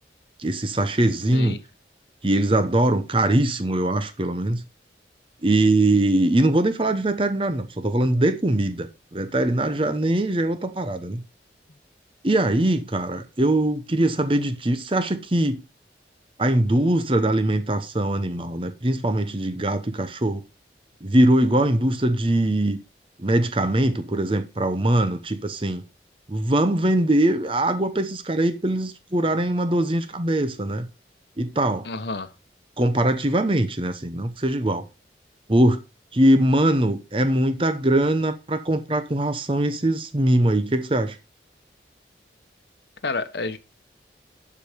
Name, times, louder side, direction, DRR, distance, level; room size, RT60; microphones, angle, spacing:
voice 1, 0.4-1.6 2.2-4.6 5.4-11.2 12.2-15.6 16.4-20.4 21.0-22.8 23.2-25.8 26.3-30.9 31.4-31.9 32.8-34.8 35.5-35.8 36.1-41.2, right 1 dB, 30° right, 0.8 m, -22 dB
voice 2, 31.8-32.3 43.0-43.6, left 3 dB, 70° left, 1.1 m, -29 dB
11.5 x 4.9 x 5.1 m
head